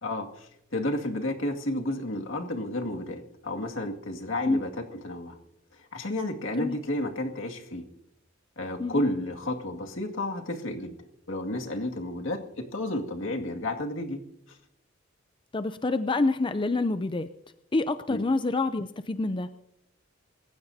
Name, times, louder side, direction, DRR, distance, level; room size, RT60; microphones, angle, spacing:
voice 1, 0.0-5.4 5.7-7.9 8.6-10.9 11.3-14.2 14.5-14.6 18.1-18.2, left 1 dB, 75° left, 3 dB, 2.2 m, -32 dB
voice 2, 15.5-17.3 17.7-19.5, left 3 dB, 25° left, 11 dB, 0.5 m, -27 dB
27.5 x 15.5 x 2.8 m, 0.81 s
head